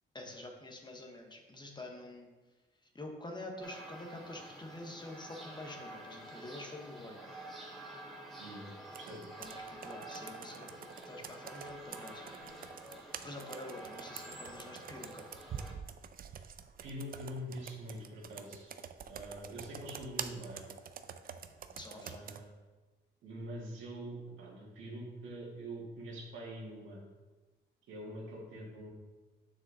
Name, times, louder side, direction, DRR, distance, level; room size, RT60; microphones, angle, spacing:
voice 1, 0.1-2.3 2.9-7.2 9.4-10.7 11.1-12.2 12.5-12.7 13.2-15.3 21.8-22.3, left 2 dB, 20° left, 2 dB, 1.1 m, -47 dB
sound 1, 3.6-15.7, right 1 dB, ahead, 2.1 m, -49 dB
Computer keyboard, 8.9-22.4, right 7 dB, 45° right, 0.5 m, -47 dB
voice 2, 16.8-18.7 19.1-20.7 21.9-22.5 23.2-27.0 27.9-28.9, right 1 dB, 80° right, -3 dB, 2.1 m, -44 dB
7.3 x 6.5 x 2.7 m, 1.2 s
cardioid pair, 90°, 20 cm